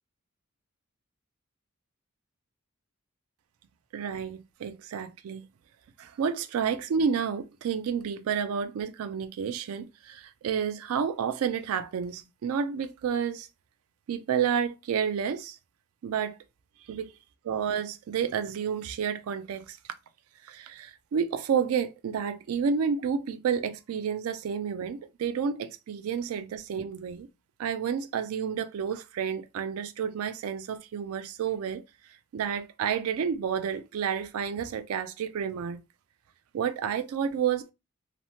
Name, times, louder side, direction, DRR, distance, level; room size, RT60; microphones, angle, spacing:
voice 1, 3.9-5.4 6.0-13.5 14.1-15.6 16.0-16.4 16.9-17.1 17.4-19.8 20.4-27.3 27.6-31.8 32.3-35.8 36.5-37.7, right 7 dB, 75° right, 0.3 m, -30 dB
2.9 x 2.0 x 2.7 m
head